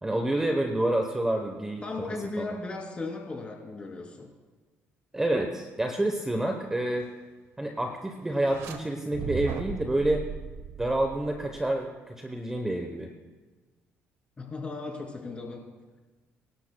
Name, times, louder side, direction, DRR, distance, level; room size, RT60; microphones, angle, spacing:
voice 1, 0.0-1.8 2.4-2.5 5.1-7.1 7.6-10.3 10.8-13.1, right 1 dB, 10° right, 4 dB, 0.9 m, -28 dB
voice 2, 1.8-4.3 14.4-15.6, left 3 dB, 25° left, 0 dB, 2.8 m, -36 dB
sound 1, 8.3-8.8 9.1-11.7, right 5 dB, 75° right, 1.2 m, -37 dB
24.0 x 11.5 x 2.2 m, 1.3 s
cardioid pair, 120°, 5 cm